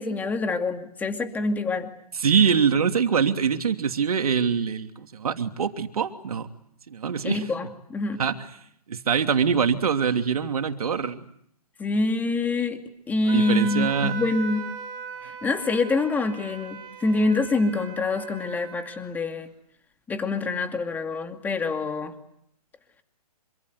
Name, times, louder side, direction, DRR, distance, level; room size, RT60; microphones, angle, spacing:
voice 1, 0.0-1.9 7.2-8.2 11.8-12.8 13.1-14.7 15.4-19.5 20.1-22.1, left 3 dB, 10° left, 2.5 m, -26 dB
voice 2, 2.2-6.5 6.9-7.4 8.2-8.3 8.9-11.2 13.3-14.2, right 6 dB, 70° right, 2.9 m, -24 dB
Wind instrument woodwind instrument, 13.3-19.1, right 6 dB, 25° right, 4.8 m, -38 dB
27.0 x 25.5 x 8.1 m
hypercardioid pair, 145°, 20 cm